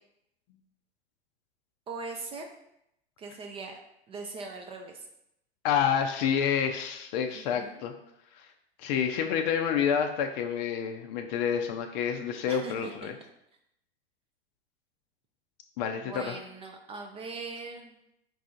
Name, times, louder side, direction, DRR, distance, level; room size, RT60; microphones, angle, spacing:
voice 1, 1.9-2.5 3.2-3.8 4.1-5.0 7.3-7.8 12.5-13.1 16.0-18.0, right 4 dB, 20° right, 3 dB, 0.4 m, -40 dB
voice 2, 5.6-7.9 8.4-8.5 8.8-13.1 15.8-16.3, left 8 dB, 45° left, 5 dB, 0.5 m, -28 dB
4.7 x 2.4 x 3.9 m, 0.79 s
hypercardioid pair, 95°, 31 cm